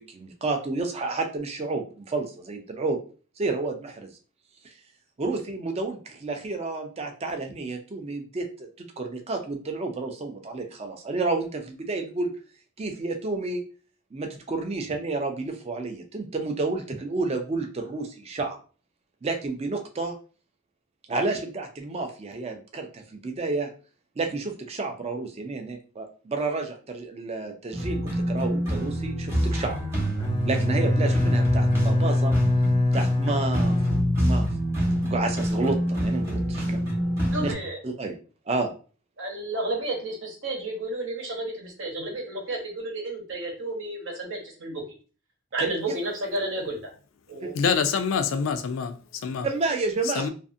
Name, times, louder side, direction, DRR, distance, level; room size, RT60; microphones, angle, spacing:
voice 1, 0.1-3.0 3.4-4.1 5.2-8.5 8.8-12.3 12.8-13.6 14.1-18.6 19.2-20.2 21.1-23.7 24.2-29.8 30.4-32.4 32.9-33.8 34.2-34.5 34.8-36.8 37.4-37.5 37.8-38.1 38.5-38.7 45.6-45.7 47.4-47.5 49.4-50.3, right 3 dB, 30° right, 0.4 m, -30 dB
sound 1, 27.7-37.5, right 1 dB, 15° right, 0.9 m, -27 dB
Bowed string instrument, 30.2-34.9, left 2 dB, 20° left, 0.5 m, -24 dB
voice 2, 37.3-37.8 39.2-44.8 45.5-46.7 47.3-47.5, right 2 dB, 70° right, 0.9 m, -31 dB
voice 3, 47.5-49.5 50.0-50.3, left 6 dB, 75° left, 0.4 m, -26 dB
2.5 x 2.5 x 2.5 m
head